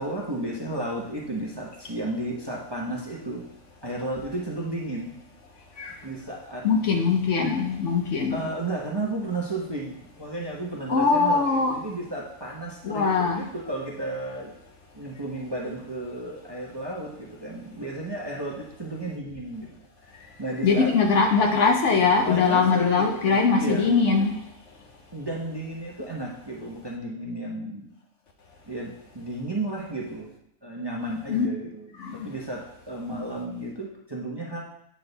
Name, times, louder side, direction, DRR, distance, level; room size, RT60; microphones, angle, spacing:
voice 1, 0.0-3.5 3.8-5.1 6.0-6.7 8.3-14.5 14.9-19.7 20.4-20.9 22.2-23.9 25.1-27.9 28.7-30.3 30.6-34.6, right 2 dB, 20° right, -3 dB, 0.8 m, -33 dB
voice 2, 6.6-8.4 10.9-11.8 12.8-13.4 20.6-24.3 31.3-31.5 32.0-32.1, left 5 dB, 60° left, 3 dB, 1.0 m, -21 dB
8.6 x 3.8 x 4.0 m, 0.75 s
omnidirectional pair, 1.5 m